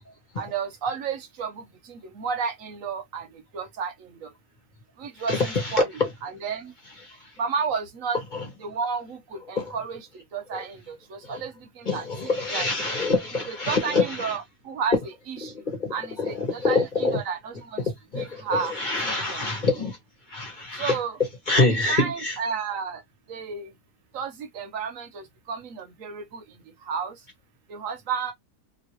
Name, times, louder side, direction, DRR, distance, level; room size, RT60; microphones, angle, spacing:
voice 1, 0.4-1.6 2.2-3.3 3.5-3.9 5.0-5.9 6.2-6.7 7.4-8.2 8.6-9.2 9.5-10.0 10.3-11.5 11.9-12.0 12.5-12.7 13.5-15.0 15.3-15.5 15.9-16.2 16.5-17.8 18.1-18.7 19.0-19.4 20.8-21.2 21.6-23.0 23.3-23.7 24.1-26.2 26.9-27.1 27.7-28.3, right 6 dB, 60° right, 1.0 m, -31 dB
voice 2, 5.3-6.1 8.3-8.4 9.6-9.7 10.5-10.6 11.3-11.4 11.8-14.4 15.4-15.5 15.8-17.2 18.1-20.0 20.3-21.0 21.5-22.4, left 3 dB, 30° left, 1.1 m, -25 dB
2.9 x 2.8 x 2.9 m
omnidirectional pair, 1.8 m